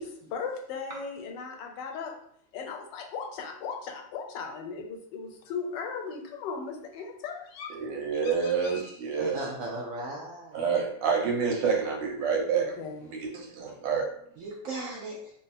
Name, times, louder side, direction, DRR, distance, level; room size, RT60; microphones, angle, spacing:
voice 1, 0.0-2.1 2.5-7.7 8.2-8.9 12.5-13.1, left 5 dB, 85° left, 3 dB, 1.3 m, -37 dB
voice 2, 7.7-9.4 10.5-14.0, right 5 dB, 85° right, 0 dB, 1.6 m, -28 dB
voice 3, 9.2-10.6 14.4-15.3, right 2 dB, 70° right, -1 dB, 0.8 m, -37 dB
3.4 x 2.1 x 4.1 m, 0.67 s
omnidirectional pair, 1.9 m